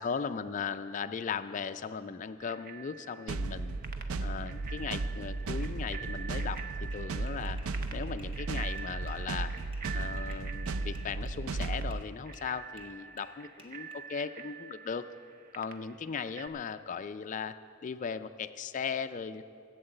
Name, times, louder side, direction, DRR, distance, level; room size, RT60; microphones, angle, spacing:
voice 1, 0.0-3.8 4.2-6.6 6.9-7.6 7.9-9.5 9.9-15.0 15.5-17.6 17.8-19.4, left 6 dB, 35° left, 11 dB, 0.3 m, -37 dB
Bicycle bell, 2.4-16.5, right 7 dB, 45° right, 0.7 m, -47 dB
sound 1, 3.3-12.0, right 3 dB, 85° right, 0.5 m, -35 dB
sound 2, 6.6-12.1 12.3-13.9, equal, 25° right, 1.0 m, -56 dB
15.0 x 8.0 x 7.7 m, 2.5 s
head